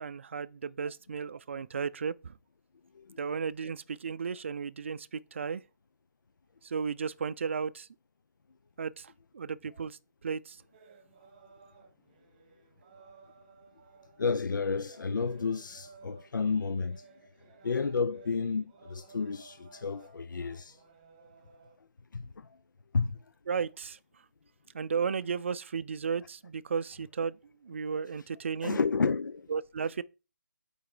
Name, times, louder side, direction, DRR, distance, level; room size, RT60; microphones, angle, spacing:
voice 1, 0.0-2.3 3.2-5.6 6.6-7.9 8.8-10.6 23.5-24.0 24.7-27.4 27.6-28.8 29.5-30.0, right 6 dB, 40° right, 0.4 m, -34 dB
voice 2, 2.9-3.3 14.2-17.1 17.5-20.8 22.1-22.6 22.9-23.3 28.6-29.5, left 4 dB, 75° left, 0.7 m, -31 dB
sound 1, 10.7-21.8, right 5 dB, 25° right, 1.2 m, -57 dB
8.1 x 4.8 x 4.9 m
hypercardioid pair, 170°, 10 cm